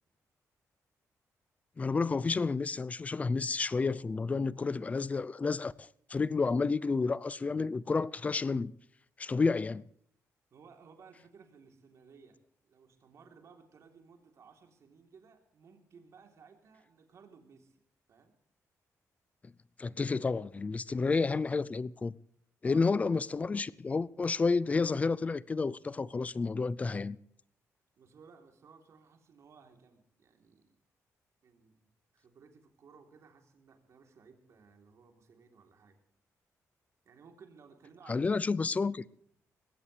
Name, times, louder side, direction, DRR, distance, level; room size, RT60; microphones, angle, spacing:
voice 1, 1.8-8.7 9.2-9.9 19.8-22.1 22.6-27.2 38.1-39.0, left 4 dB, 25° left, 0.5 m, -30 dB
voice 2, 10.5-12.4 12.6-17.8 18.1-18.3 19.9-20.0 22.6-23.0 28.0-30.7 31.4-36.0 37.0-38.4, right 5 dB, 60° right, 3.4 m, -58 dB
20.5 x 17.0 x 3.3 m
wide cardioid pair, 140°, 6 cm